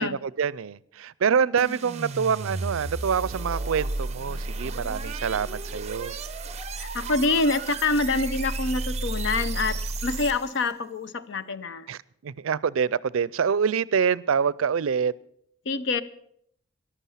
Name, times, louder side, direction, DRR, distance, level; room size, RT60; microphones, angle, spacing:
voice 1, 0.0-6.1 11.9-15.1, right 6 dB, 85° right, 22 dB, 0.4 m, -26 dB
sound 1, 1.6-10.7, right 2 dB, 35° right, 0.7 m, -33 dB
voice 2, 6.8-9.8 10.0-11.9 15.7-16.0, left 3 dB, 65° left, 13 dB, 0.7 m, -26 dB
14.0 x 11.5 x 5.7 m, 0.70 s
head